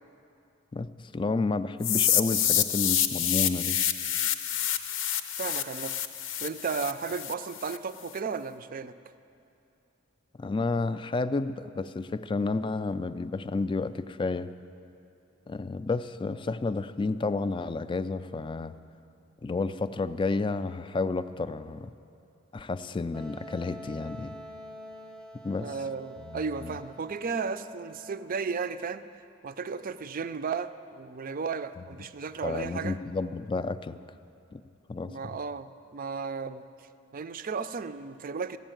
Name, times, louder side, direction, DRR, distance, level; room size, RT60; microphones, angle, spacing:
voice 1, 0.7-3.8 10.4-14.5 15.5-18.7 19.4-21.9 22.5-24.3 25.4-25.7 26.2-26.7 32.4-34.0 34.5-34.6 34.9-35.4, left 3 dB, 25° left, 12 dB, 0.3 m, -31 dB
sound 1, 1.8-7.8, left 10 dB, 75° left, 0.6 m, -27 dB
voice 2, 5.4-6.0 6.4-9.0 25.6-29.0 29.4-33.0 35.1-36.6 37.1-38.6, right 5 dB, 45° right, 12 dB, 0.4 m, -34 dB
Wind instrument woodwind instrument, 23.1-28.7, equal, 5° left, 0.7 m, -46 dB
15.0 x 7.1 x 9.0 m, 2.7 s
head